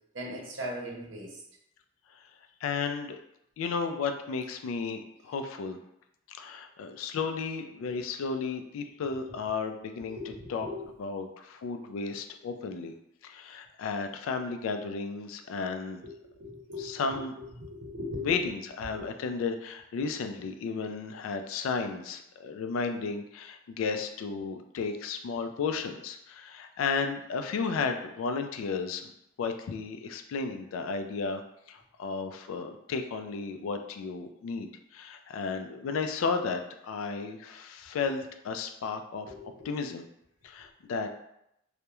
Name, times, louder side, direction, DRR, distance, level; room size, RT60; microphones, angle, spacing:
voice 1, 0.1-1.4 7.9-8.0 10.2-10.9 16.0-16.1 16.4-17.2 17.6-18.4 18.9-19.1 39.3-39.7, left 1 dB, 65° right, -2 dB, 0.7 m, -39 dB
voice 2, 2.6-3.2 3.6-5.8 6.3-10.7 11.0-13.0 13.2-16.0 16.8-17.3 18.2-29.1 29.4-31.4 31.7-39.3 39.6-40.0 40.4-41.1, left 5 dB, 90° left, 7 dB, 0.3 m, -33 dB
2.3 x 2.1 x 2.9 m, 0.79 s
head